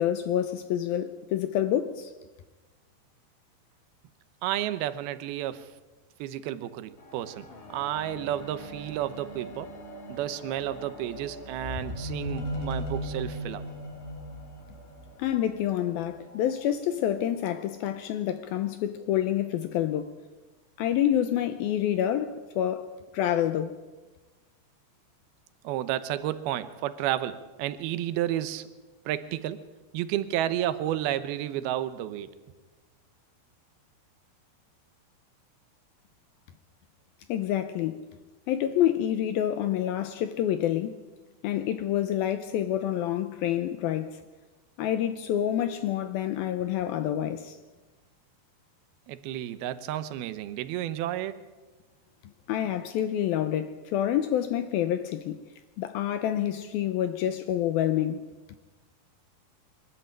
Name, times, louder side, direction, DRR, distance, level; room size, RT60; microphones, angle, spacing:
voice 1, 0.0-2.1 15.2-20.2 20.8-22.9 23.1-23.8 37.3-38.0 38.5-41.0 41.4-44.2 44.8-47.6 52.5-55.4 55.8-58.3, left 11 dB, 75° left, 2.3 m, -27 dB
voice 2, 4.4-5.7 6.2-9.7 10.1-13.7 25.6-28.7 29.1-29.6 29.9-32.3 49.1-51.4, right 12 dB, 75° right, 2.6 m, -31 dB
sound 1, 7.0-16.5 17.3-17.4, equal, 50° left, 3.8 m, -39 dB
23.5 x 13.5 x 8.9 m
omnidirectional pair, 5.0 m